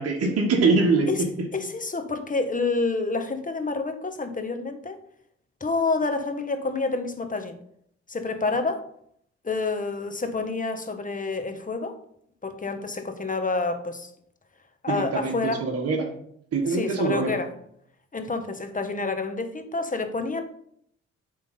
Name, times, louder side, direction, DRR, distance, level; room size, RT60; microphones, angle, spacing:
voice 1, 0.0-1.5 14.9-16.1 16.5-17.4, right 3 dB, 50° right, 1 dB, 1.4 m, -24 dB
voice 2, 1.5-5.0 5.6-7.6 8.1-8.9 9.4-12.0 12.4-14.1 14.8-15.6 16.7-17.5 18.1-20.4, left 3 dB, 25° left, 7 dB, 1.4 m, -28 dB
9.1 x 3.8 x 5.5 m, 0.69 s
supercardioid pair, 50°, 31 cm